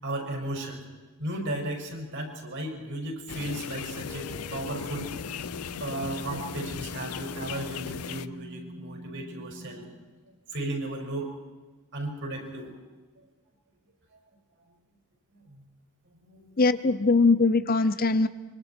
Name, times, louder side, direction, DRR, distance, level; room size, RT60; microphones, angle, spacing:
voice 1, 0.0-0.8 1.2-5.1 5.8-10.0 10.5-11.3 11.9-12.7 15.3-15.6 16.2-16.5, right 1 dB, 55° right, 1 dB, 5.7 m, -35 dB
sound 1, 3.3-8.3, left 7 dB, 90° left, 0.6 m, -37 dB
sound 2, 4.0-10.1, equal, 20° right, 1.4 m, -45 dB
voice 2, 16.6-18.3, left 3 dB, 40° left, 14 dB, 0.7 m, -21 dB
26.0 x 24.5 x 4.5 m, 1.3 s
head